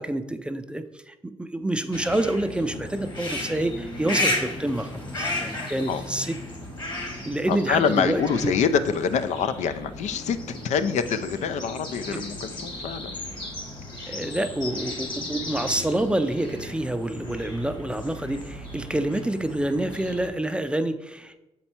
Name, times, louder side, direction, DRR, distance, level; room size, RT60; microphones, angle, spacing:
voice 1, 0.0-6.4 7.3-8.5 14.1-21.4, right 1 dB, 10° right, 9 dB, 0.4 m, -27 dB
sound 1, 1.9-20.3, left 1 dB, 40° left, 1.8 m, -34 dB
voice 2, 7.5-13.2 17.2-17.4, left 6 dB, 75° left, 11 dB, 0.5 m, -26 dB
7.0 x 4.4 x 4.3 m, 0.98 s
cardioid pair, 105°, 12 cm